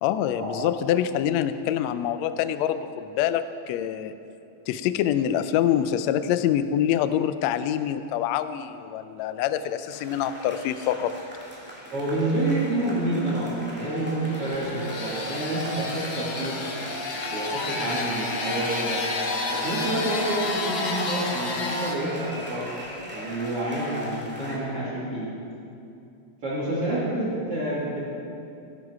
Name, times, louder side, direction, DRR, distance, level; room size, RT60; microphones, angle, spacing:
voice 1, 0.0-4.1 4.7-11.2, left 10 dB, 90° left, 11 dB, 1.5 m, -25 dB
sound 1, 9.9-24.6, equal, 5° right, 1.6 m, -36 dB
voice 2, 11.9-16.6 17.3-19.0 19.5-22.7 23.1-25.3 26.4-28.0, right 1 dB, 45° right, -8 dB, 3.7 m, -28 dB
sound 2, 14.1-22.0, left 3 dB, 60° left, 1.2 m, -32 dB
17.0 x 12.0 x 4.7 m, 2.6 s
omnidirectional pair, 3.8 m